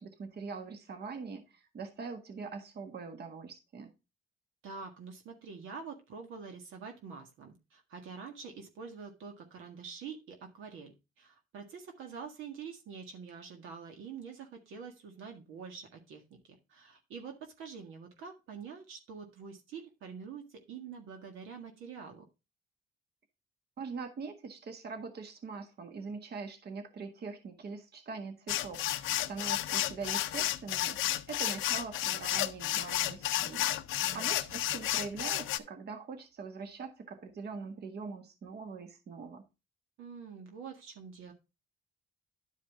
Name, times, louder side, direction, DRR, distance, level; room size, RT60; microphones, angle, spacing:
voice 1, 0.0-3.9 23.8-31.0 31.3-39.5, right 4 dB, 55° right, 6 dB, 1.6 m, -43 dB
voice 2, 4.6-16.4 16.7-22.2 34.0-34.3 40.0-41.3, right 6 dB, 90° right, 3 dB, 1.7 m, -46 dB
sound 1, 28.5-35.6, left 14 dB, 85° left, 0.6 m, -32 dB
11.0 x 4.9 x 3.6 m, 0.27 s
cardioid pair, 90°, 20 cm